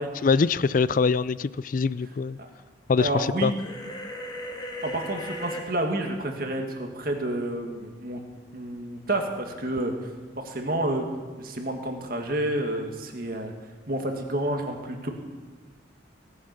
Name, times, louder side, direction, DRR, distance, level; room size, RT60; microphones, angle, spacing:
voice 1, 0.2-2.4 2.9-3.5, left 5 dB, 45° left, 18 dB, 0.3 m, -23 dB
voice 2, 3.0-3.6 4.8-8.2 8.5-9.9 10.4-11.1 11.4-13.5 13.9-15.1, right 1 dB, 50° right, 3 dB, 1.9 m, -29 dB
sound 1, 3.6-5.7, equal, 20° left, 1.8 m, -36 dB
18.0 x 10.0 x 6.9 m, 1.4 s
head